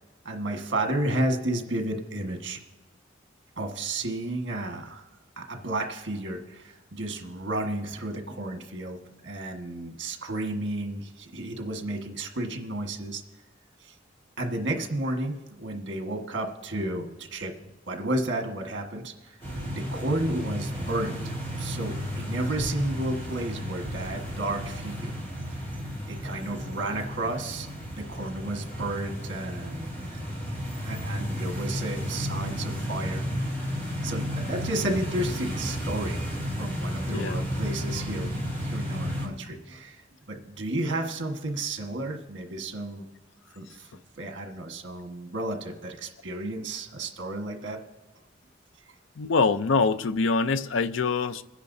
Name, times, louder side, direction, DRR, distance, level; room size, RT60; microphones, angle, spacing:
voice 1, 0.2-2.6 3.6-5.0 5.4-13.2 13.8-13.9 14.4-17.5 17.9-19.4 19.7-25.2 26.1-30.0 30.8-33.4 34.0-36.2 36.6-38.3 38.6-40.0 40.3-43.0 43.5-43.9 44.2-47.8, right 1 dB, 75° right, 1.5 m, -32 dB
sound 1, 19.4-39.3, equal, 10° left, 2.8 m, -33 dB
voice 2, 37.1-37.4 49.2-51.4, left 4 dB, 85° left, 0.5 m, -24 dB
27.5 x 10.0 x 2.7 m
head